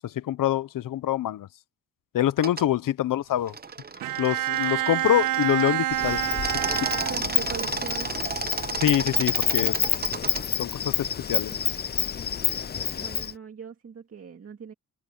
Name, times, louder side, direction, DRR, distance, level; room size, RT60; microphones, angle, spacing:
voice 1, 0.0-1.5 2.1-3.5 4.2-6.2 6.8-6.9 8.8-9.8 10.6-11.5, left 12 dB, 90° left, 0.9 m, -25 dB
sound 1, 2.4-2.6 3.5-5.8 6.3-10.4, right 5 dB, 30° right, 0.8 m, -33 dB
Bowed string instrument, 4.0-7.7, right 14 dB, 80° right, 0.5 m, -28 dB
Insect, 5.9-13.3, left 7 dB, 30° left, 0.5 m, -28 dB
voice 2, 7.1-8.1 12.8-14.7, right 6 dB, 45° right, 2.1 m, -40 dB
cardioid pair, 90°, 32 cm